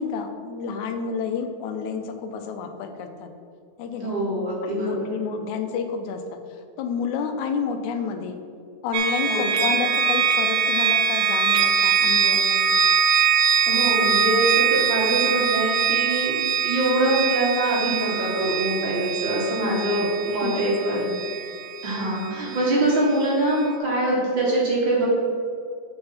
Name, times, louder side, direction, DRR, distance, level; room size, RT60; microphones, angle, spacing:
voice 1, 0.0-3.3 3.8-4.1 4.7-6.4 6.8-8.4 8.8-12.8 19.6-21.2, left 6 dB, 85° left, 6 dB, 2.1 m, -30 dB
voice 2, 4.0-4.9 9.2-9.5 13.7-16.3 16.6-21.0 21.8-25.1, right 1 dB, 45° right, -4 dB, 2.0 m, -24 dB
sound 1, 8.9-22.7, right 6 dB, 80° right, 1.5 m, -23 dB
7.8 x 5.5 x 5.7 m, 2.3 s
omnidirectional pair, 3.4 m